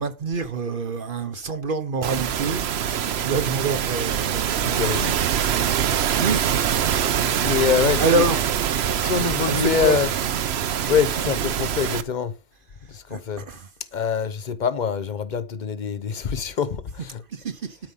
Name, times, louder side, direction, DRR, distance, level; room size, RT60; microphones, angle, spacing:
voice 1, 0.0-4.9 6.2-6.4 8.0-8.5 9.2-10.0 13.1-13.7 17.3-17.8, right 3 dB, 55° right, 1.0 m, -27 dB
sound 1, 2.0-12.0, right 9 dB, 80° right, 1.0 m, -24 dB
voice 2, 4.5-5.1 7.4-8.2 8.9-10.1 10.9-12.4 12.9-13.5 13.9-17.2, left 7 dB, 50° left, 0.9 m, -25 dB
12.0 x 4.9 x 5.6 m
omnidirectional pair, 1.1 m